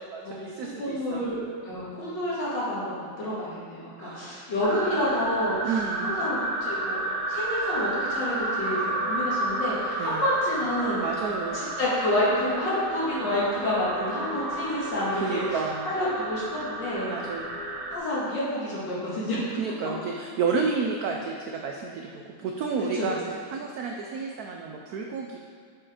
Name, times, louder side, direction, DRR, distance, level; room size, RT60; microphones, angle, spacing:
voice 1, 0.0-1.2 4.0-4.5 4.8-5.0 5.6-6.2 10.0-10.2 11.0-11.7 15.1-16.0 17.1-17.6 19.5-25.4, right 5 dB, 90° right, 1 dB, 0.8 m, -31 dB
voice 2, 0.8-5.6 6.0-11.0 11.5-15.4 15.9-17.1 17.9-19.4 23.0-23.1, left 1 dB, 65° left, -7 dB, 2.3 m, -29 dB
sound 1, 4.6-18.0, right 2 dB, 60° right, 1.4 m, -31 dB
6.0 x 4.6 x 4.9 m, 2.1 s
omnidirectional pair, 2.2 m